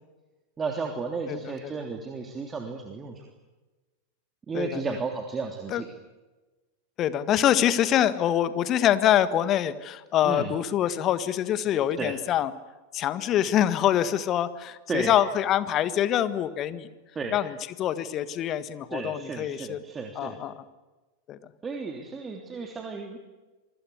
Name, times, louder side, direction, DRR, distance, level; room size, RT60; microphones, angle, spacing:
voice 1, 0.6-3.2 4.5-5.9 10.2-10.5 12.0-12.1 14.9-15.1 17.1-17.4 18.9-20.4 21.6-23.2, right 4 dB, 20° right, 3 dB, 3.2 m, -33 dB
voice 2, 4.5-5.0 5.7-5.8 7.0-12.5 12.9-16.9 17.3-19.8 20.2-20.5 21.3-21.4, left 11 dB, 30° left, 14 dB, 1.7 m, -25 dB
27.0 x 25.0 x 8.2 m, 1.2 s
figure-of-eight pair, 90°, 0 cm